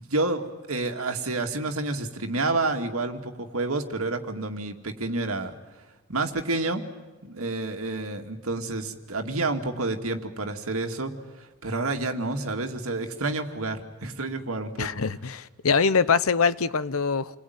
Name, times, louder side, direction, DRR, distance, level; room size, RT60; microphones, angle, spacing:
voice 1, 0.0-5.5 6.1-6.8 7.2-14.9, right 2 dB, 90° right, 2.3 m, -29 dB
voice 2, 14.8-17.4, left 5 dB, 85° left, 0.9 m, -23 dB
29.0 x 21.0 x 9.5 m
head